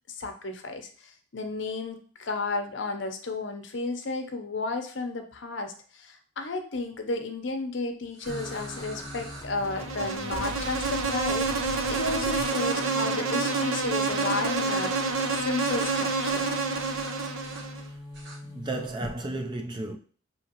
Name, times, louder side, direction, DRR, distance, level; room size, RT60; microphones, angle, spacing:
voice 1, 0.2-16.5, left 3 dB, 60° left, 0.7 m, -33 dB
sound 1, 8.1-9.4 10.5-10.7 12.0-12.9 14.0-15.3 15.6-16.0 16.3-16.5 16.7-17.6 18.1-18.4, right 2 dB, 60° right, 1.4 m, -45 dB
sound 2, 8.3-19.2, left 1 dB, 20° left, 0.6 m, -41 dB
Insect, 9.6-17.9, right 4 dB, 90° right, 0.7 m, -28 dB
voice 2, 17.8-18.1 18.4-20.0, right 2 dB, 20° right, 0.4 m, -34 dB
5.6 x 2.9 x 2.9 m
head